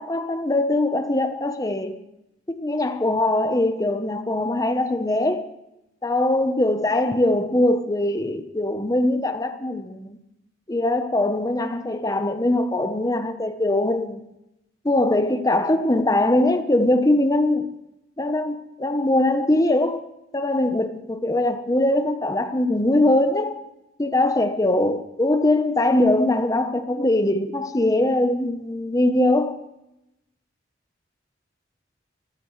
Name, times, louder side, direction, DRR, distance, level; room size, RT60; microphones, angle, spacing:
voice 1, 0.0-2.0 2.5-5.5 6.0-10.2 10.7-14.2 14.8-17.7 18.2-20.0 20.3-23.6 24.0-29.6, left 1 dB, 20° left, 0.9 m, -21 dB
22.5 x 14.5 x 3.2 m
head